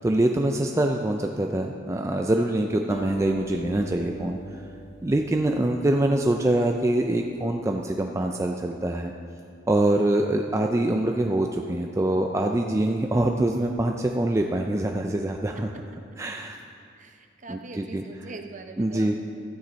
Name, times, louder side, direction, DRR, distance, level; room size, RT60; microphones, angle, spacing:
voice 1, 0.0-4.6 5.0-9.1 9.7-15.7 16.2-16.6 17.5-18.0 18.8-19.2, right 1 dB, 15° right, 2 dB, 0.4 m, -24 dB
Acoustic guitar, 2.9-7.3, equal, 35° left, 1.0 m, -40 dB
voice 2, 17.0-19.2, right 3 dB, 40° right, 5 dB, 0.7 m, -42 dB
13.0 x 9.4 x 4.0 m, 2.4 s
head